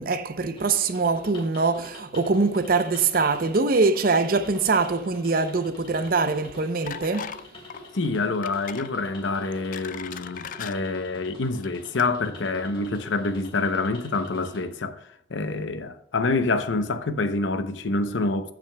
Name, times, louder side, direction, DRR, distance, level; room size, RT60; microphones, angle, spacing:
voice 1, 0.0-7.4, right 4 dB, 50° right, 0.6 m, -23 dB
sound 1, 0.6-14.6, left 2 dB, 30° left, 2.2 m, -46 dB
sound 2, 6.9-7.4 7.7-7.9 8.4-8.9 9.4-10.8 11.5-11.7 12.0-12.1, left 8 dB, 45° left, 0.3 m, -37 dB
voice 2, 7.9-15.0 15.3-18.5, left 3 dB, 90° left, 0.7 m, -27 dB
15.0 x 6.1 x 2.2 m
head